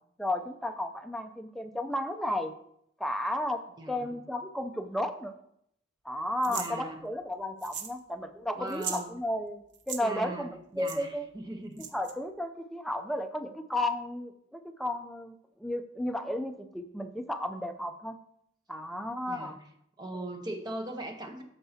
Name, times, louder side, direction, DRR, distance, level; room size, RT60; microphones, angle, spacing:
voice 1, 0.2-2.5 3.0-3.6 3.9-5.3 6.0-11.2 11.9-18.2 18.7-19.6 20.1-20.3, left 1 dB, ahead, 6 dB, 0.5 m, -33 dB
voice 2, 3.8-4.2 6.5-7.0 8.5-9.1 10.0-11.9 19.3-19.6 20.0-21.4, right 1 dB, 20° right, 3 dB, 0.9 m, -39 dB
sound 1, 6.4-6.7 7.6-8.0 8.2-8.3 8.7-9.0 9.7-10.0 10.9-11.0 11.8-12.1, right 7 dB, 65° right, 0.8 m, -37 dB
13.5 x 4.6 x 2.8 m, 0.73 s
head